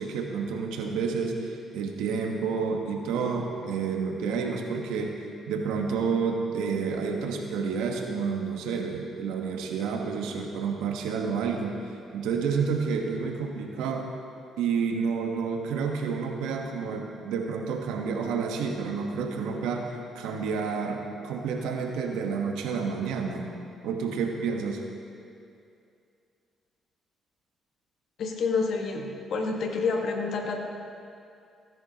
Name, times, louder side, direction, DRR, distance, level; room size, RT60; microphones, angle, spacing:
voice 1, 0.0-5.1 5.5-11.7 12.1-14.1 14.6-23.5 23.8-24.8, right 5 dB, 90° right, 2 dB, 1.2 m, -29 dB
voice 2, 28.2-30.7, left 4 dB, 70° left, 2 dB, 1.4 m, -28 dB
16.5 x 10.5 x 2.9 m, 2.5 s
cardioid pair, 75°, 0 cm